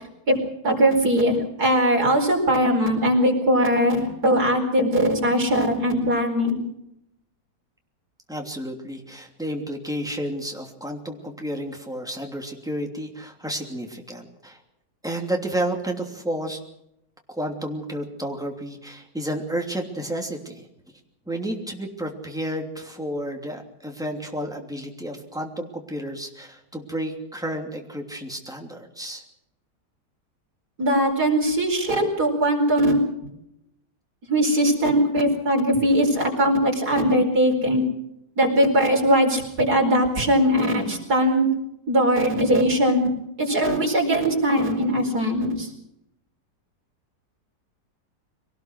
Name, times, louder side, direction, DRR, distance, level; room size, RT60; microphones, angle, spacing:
voice 1, 0.6-6.6 30.8-33.0 34.3-37.8 38.4-41.5 41.9-43.1 43.4-45.7, equal, 70° right, 1 dB, 5.2 m, -20 dB
voice 2, 8.3-14.6 15.0-16.6 17.3-20.6 21.3-29.2, right 1 dB, ahead, 2 dB, 2.8 m, -31 dB
23.5 x 18.5 x 6.2 m, 0.83 s
omnidirectional pair, 1.7 m